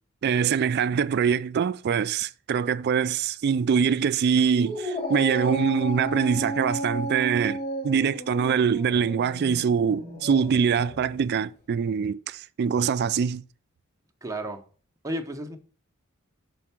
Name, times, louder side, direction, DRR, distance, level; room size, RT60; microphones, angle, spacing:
voice 1, 0.2-13.4, right 7 dB, 50° right, 0.3 m, -24 dB
Dog, 4.5-11.2, right 1 dB, 30° left, 1.6 m, -33 dB
voice 2, 14.2-14.6 15.0-15.6, right 1 dB, 15° right, 0.8 m, -32 dB
6.2 x 4.4 x 5.7 m
head